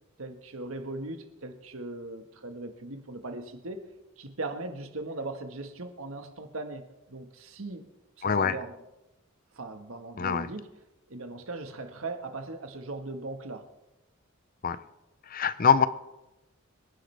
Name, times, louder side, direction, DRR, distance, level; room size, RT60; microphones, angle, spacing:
voice 1, 0.2-3.9 4.2-7.8 8.2-8.7 9.5-10.7 11.1-13.7, right 2 dB, 85° right, 6 dB, 1.5 m, -39 dB
voice 2, 8.2-8.6 10.2-10.5 14.6-14.8 15.3-15.9, left 6 dB, 45° left, 14 dB, 0.6 m, -24 dB
25.5 x 10.5 x 3.4 m, 0.97 s
head